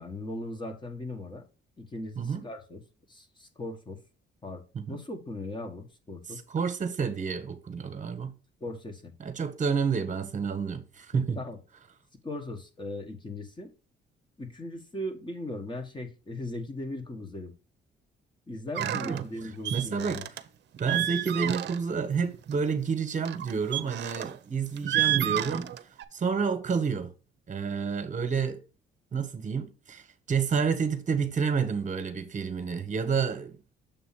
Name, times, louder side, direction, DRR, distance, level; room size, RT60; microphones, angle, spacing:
voice 1, 0.0-1.4 1.8-2.8 3.1-4.0 4.4-4.6 4.9-6.4 8.6-9.1 11.1-11.6 12.2-13.7 14.4-17.5 18.5-20.2, left 2 dB, 25° left, 1.3 m, -38 dB
voice 2, 6.5-8.3 9.2-11.4 18.8-19.3 19.7-20.2 20.8-25.7 26.1-27.1 27.5-28.6 29.1-30.0 30.3-33.6, right 6 dB, 40° right, 1.2 m, -29 dB
sound 1, 18.7-19.2 19.6-20.4 20.7-21.9 22.3-22.5 23.2-24.4 24.8-26.0, right 12 dB, 60° right, 0.6 m, -30 dB
7.1 x 2.8 x 5.7 m
cardioid pair, 90°, 20 cm